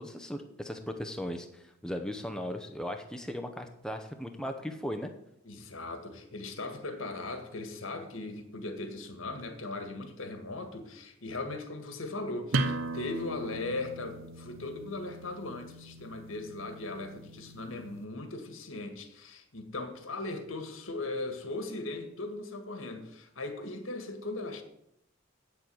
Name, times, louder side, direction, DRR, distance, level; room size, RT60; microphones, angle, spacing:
voice 1, 0.0-5.1, equal, 5° left, 5 dB, 0.7 m, -37 dB
voice 2, 5.4-24.6, left 2 dB, 80° left, 7 dB, 1.7 m, -38 dB
sound 1, 12.5-17.9, right 2 dB, 75° right, 0.9 m, -37 dB
8.6 x 7.3 x 7.8 m, 0.79 s
head